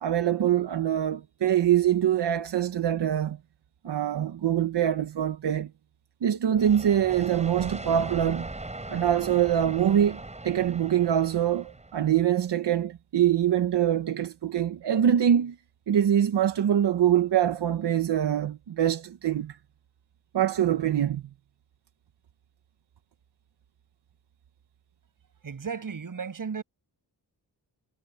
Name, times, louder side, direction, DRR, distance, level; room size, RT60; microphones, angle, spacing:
voice 1, 0.0-3.4 3.8-5.7 6.2-8.5 8.9-15.6 15.9-19.6 20.3-21.2, right 10 dB, 80° right, 1.2 m, -24 dB
sound 1, 6.5-12.3, right 2 dB, 15° right, 5.7 m, -39 dB
voice 2, 25.4-26.6, right 6 dB, 50° right, 8.0 m, -34 dB
wide cardioid pair, 150°, 41 cm